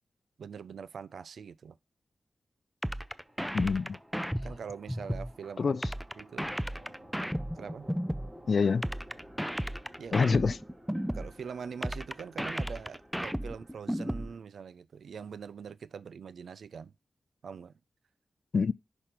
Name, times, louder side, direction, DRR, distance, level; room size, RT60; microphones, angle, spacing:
voice 1, 0.4-1.8 4.4-5.8 6.2-6.5 7.6-7.9 10.0-10.3 11.1-16.9 17.4-17.8, right 6 dB, 85° right, 0.4 m, -43 dB
sound 1, 2.8-5.3 5.8-8.3 8.8-11.3 11.8-14.3, equal, ahead, 0.4 m, -34 dB
sound 2, 3.0-14.4, equal, 30° right, 3.2 m, -53 dB
voice 2, 3.5-4.0 5.6-5.9 8.5-8.9 10.1-10.6 18.5-18.7, left 5 dB, 65° left, 0.3 m, -26 dB
5.7 x 5.1 x 5.9 m
cardioid pair, 60°, 0 cm